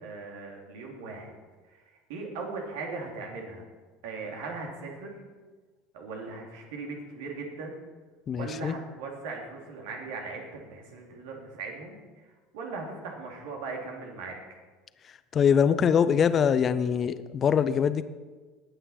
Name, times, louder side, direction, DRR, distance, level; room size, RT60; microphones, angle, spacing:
voice 1, 0.0-1.4 1.7-1.8 2.1-3.7 4.0-5.1 5.9-7.8 8.3-12.0 12.5-14.4, right 3 dB, 65° right, 0 dB, 2.9 m, -38 dB
voice 2, 8.3-8.7 15.3-18.0, left 7 dB, 35° left, 13 dB, 0.8 m, -23 dB
20.5 x 9.1 x 4.4 m, 1.3 s
figure-of-eight pair, 70°, 0 cm